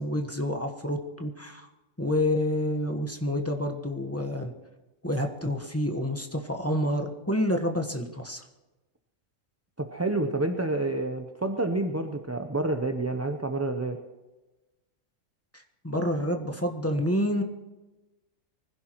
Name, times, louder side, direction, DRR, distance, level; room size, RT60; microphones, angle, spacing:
voice 1, 0.0-1.7 2.0-4.5 5.0-8.4 15.5-17.4, left 1 dB, 10° left, 3 dB, 1.2 m, -28 dB
voice 2, 9.8-14.0, right 2 dB, 15° right, 5 dB, 0.6 m, -28 dB
24.0 x 16.0 x 3.1 m, 1.1 s
omnidirectional pair, 1.4 m